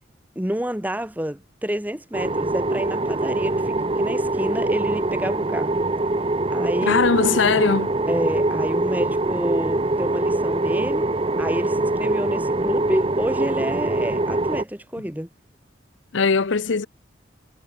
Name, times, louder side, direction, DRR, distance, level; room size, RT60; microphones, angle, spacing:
voice 1, 0.3-5.8 6.5-7.0 8.1-11.1 11.4-15.3, equal, 10° right, 1.2 m, -29 dB
sound 1, 2.1-14.6, right 2 dB, 30° right, 0.7 m, -23 dB
voice 2, 6.8-7.9 16.1-16.9, left 5 dB, 80° left, 0.7 m, -20 dB
head